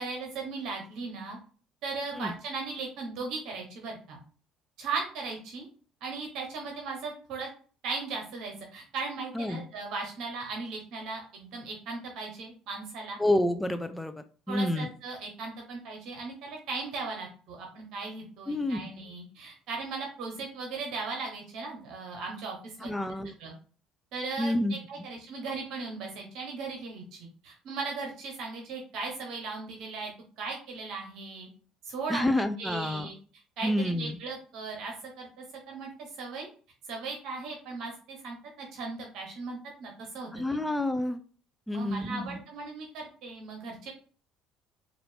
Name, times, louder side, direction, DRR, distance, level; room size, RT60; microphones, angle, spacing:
voice 1, 0.0-1.4 1.8-4.2 4.8-5.7 6.0-7.5 7.8-13.2 14.5-22.9 23.4-23.5 24.1-31.5 31.8-32.2 32.6-33.2 33.6-35.3 35.7-36.5 36.9-40.6 41.7-43.9, right 4 dB, 65° right, 1 dB, 1.0 m, -37 dB
voice 2, 13.2-14.9 18.5-18.8 22.8-23.3 24.4-24.8 32.1-33.1 33.6-34.2 40.3-41.2 41.7-42.4, left 1 dB, 10° left, 9 dB, 0.5 m, -29 dB
4.1 x 2.6 x 3.3 m, 0.40 s
hypercardioid pair, 65°, 0 cm